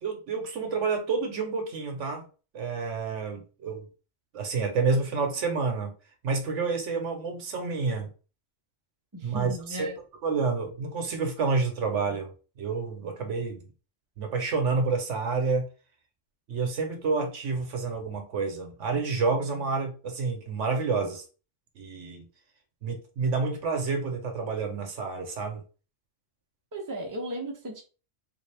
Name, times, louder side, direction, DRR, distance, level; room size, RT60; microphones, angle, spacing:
voice 1, 0.0-2.3 2.5-3.9 4.3-5.9 6.2-8.1 9.2-9.5 10.2-12.3 12.6-13.6 14.2-15.7 16.5-21.2 21.8-22.3 22.8-25.6, right 4 dB, 75° right, 1.2 m, -29 dB
voice 2, 9.1-9.9 26.7-27.8, right 1 dB, 20° right, 0.7 m, -35 dB
3.7 x 2.6 x 3.3 m
omnidirectional pair, 1.3 m